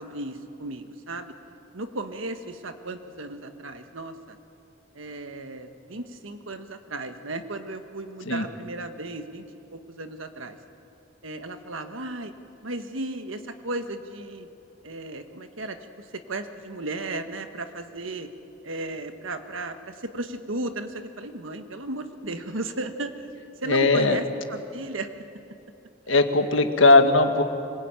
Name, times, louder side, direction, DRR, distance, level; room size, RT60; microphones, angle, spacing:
voice 1, 0.0-1.3 1.7-4.4 4.9-10.6 11.2-12.3 12.6-14.5 14.8-18.3 18.6-23.3 23.6-25.1 26.1-26.2, right 2 dB, 90° right, 8 dB, 1.5 m, -35 dB
voice 2, 23.7-24.2 26.1-27.4, left 3 dB, 80° left, 6 dB, 1.7 m, -18 dB
24.5 x 20.5 x 9.1 m, 2.8 s
head